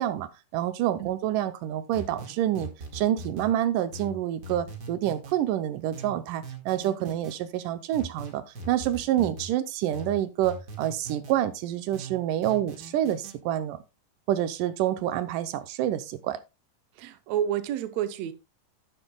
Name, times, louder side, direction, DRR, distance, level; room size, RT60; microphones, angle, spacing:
voice 1, 0.0-13.8 14.3-16.4, right 12 dB, 85° right, 2.3 m, -28 dB
sound 1, 1.9-3.5 3.9-5.4 5.9-7.3 7.9-9.5 9.9-11.4 11.9-13.3, right 2 dB, 35° right, 2.1 m, -40 dB
voice 2, 17.0-18.3, right 10 dB, 70° right, 1.8 m, -30 dB
11.5 x 10.0 x 2.3 m
omnidirectional pair, 3.8 m